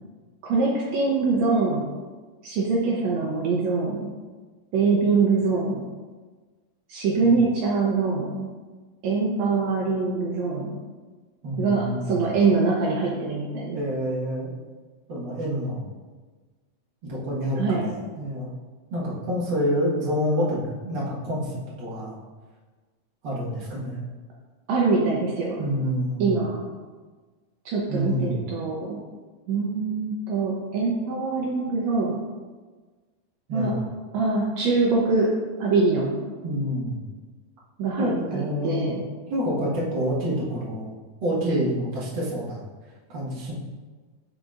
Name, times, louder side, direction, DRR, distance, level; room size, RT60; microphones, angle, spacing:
voice 1, 0.4-1.8 2.4-4.1 4.7-5.8 6.9-8.5 9.0-10.8 11.6-13.8 17.6-17.9 24.7-25.6 26.2-26.6 27.6-29.0 29.5-32.2 33.5-33.8 34.1-35.3 35.6-36.2 37.8-39.0, right 4 dB, 90° right, -3 dB, 1.5 m, -24 dB
voice 2, 11.4-12.3 13.7-14.5 15.1-15.8 17.0-18.5 18.9-22.1 23.2-24.0 25.6-26.4 27.9-28.4 33.5-33.9 36.4-37.0 38.0-38.9 39.3-40.9 41.2-42.7 43.1-43.5, equal, 50° right, -6 dB, 1.3 m, -27 dB
10.0 x 3.9 x 2.5 m, 1.4 s
omnidirectional pair, 4.1 m